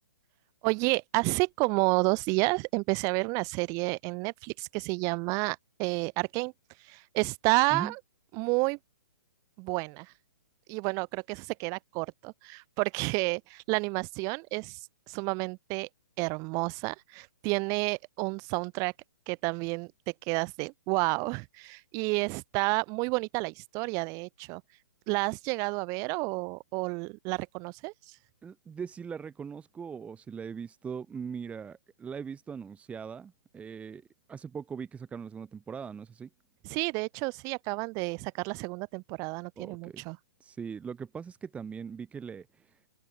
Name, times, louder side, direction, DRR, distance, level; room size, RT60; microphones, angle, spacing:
voice 1, 0.6-6.5 6.8-8.0 8.3-8.8 9.6-10.1 10.7-15.9 16.2-18.9 19.3-24.6 25.1-28.2 36.6-40.2, right 29 dB, 30° right, 2.3 m, -30 dB
voice 2, 28.4-34.0 34.3-36.3 39.6-40.0 40.4-42.7, right 6 dB, 10° right, 1.6 m, -40 dB
figure-of-eight pair, 130°, 11 cm